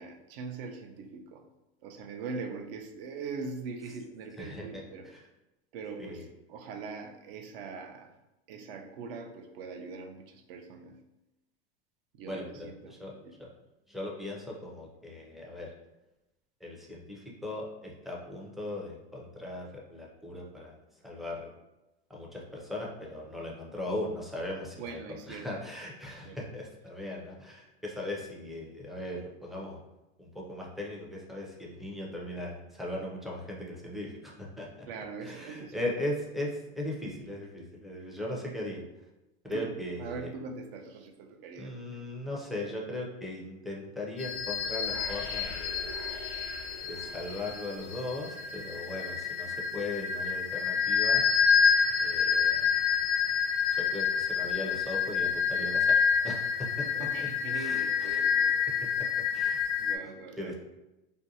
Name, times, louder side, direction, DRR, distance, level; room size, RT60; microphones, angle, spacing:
voice 1, 0.0-1.5 1.8-5.1 5.7-8.1 8.5-11.0 12.1-13.3 24.8-25.6 26.2-26.4 34.9-35.8 39.5-39.7 40.0-42.1 57.0-59.2 59.8-60.5, right 4 dB, 60° right, 5 dB, 0.5 m, -42 dB
voice 2, 4.4-5.3 6.0-6.3 12.3-13.5 13.9-15.7 16.6-20.8 21.0-21.5 22.1-29.8 30.2-34.9 35.2-38.8 39.4-40.3 41.6-45.9 46.8-51.2 52.0-52.7 53.7-56.0 56.2-57.3 57.5-58.2 59.3-59.6 60.4-60.5, left 1 dB, ahead, -3 dB, 0.4 m, -38 dB
sound 1, 44.2-60.0, left 6 dB, 60° left, 0.4 m, -28 dB
sound 2, 44.6-49.5, left 1 dB, 85° left, 0.8 m, -46 dB
2.5 x 2.2 x 2.7 m, 0.96 s
hypercardioid pair, 105°, 32 cm